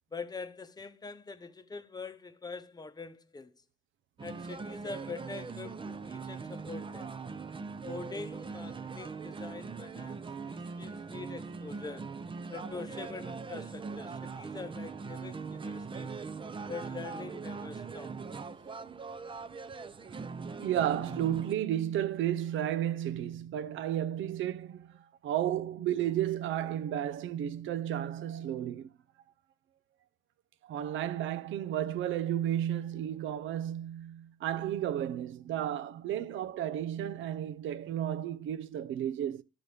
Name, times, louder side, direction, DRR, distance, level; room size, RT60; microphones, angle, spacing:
voice 1, 0.1-3.6 4.2-7.1 7.8-12.1 12.5-16.1 16.7-18.2, left 4 dB, 20° left, 0.8 m, -44 dB
sound 1, 4.2-21.5, right 4 dB, 25° right, 0.6 m, -41 dB
voice 2, 20.6-25.0 25.2-28.9 30.6-39.4, right 11 dB, 75° right, 0.6 m, -33 dB
12.0 x 4.1 x 3.2 m
cardioid pair, 90°, 20 cm